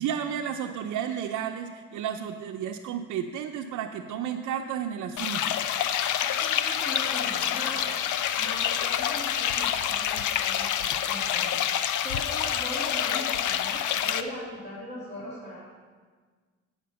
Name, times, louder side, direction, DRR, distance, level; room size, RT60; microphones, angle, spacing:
voice 1, 0.0-5.5, right 8 dB, 80° right, 2 dB, 0.6 m, -32 dB
sound 1, 5.2-14.2, left 10 dB, 80° left, 0.6 m, -27 dB
voice 2, 6.2-8.1 8.4-11.6 12.0-15.6, left 1 dB, 35° left, -8 dB, 2.6 m, -40 dB
9.4 x 5.8 x 7.0 m, 1.5 s
cardioid pair, 90°, 30 cm